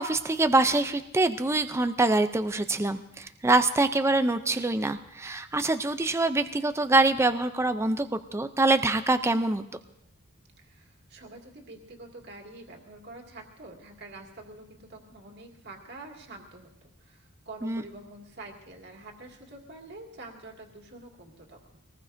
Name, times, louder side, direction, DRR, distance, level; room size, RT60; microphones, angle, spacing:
voice 1, 0.0-9.6 17.6-17.8, right 2 dB, 10° right, 9 dB, 0.4 m, -25 dB
voice 2, 10.6-21.6, right 2 dB, 50° right, 1 dB, 2.2 m, -46 dB
23.5 x 19.0 x 2.6 m, 0.81 s
head